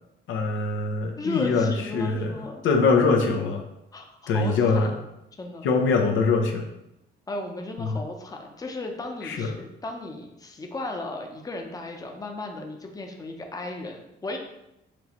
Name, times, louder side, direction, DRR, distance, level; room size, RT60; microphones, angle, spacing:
voice 1, 0.3-2.3 2.6-3.6 4.3-4.9 5.6-6.7 7.8-8.0 9.2-9.5, left 4 dB, 75° left, 3 dB, 0.7 m, -23 dB
voice 2, 1.2-2.6 3.9-4.9 5.4-5.7 7.3-14.4, left 2 dB, 20° left, 2 dB, 0.7 m, -35 dB
6.0 x 2.6 x 3.0 m, 0.88 s
cardioid pair, 90°, 20 cm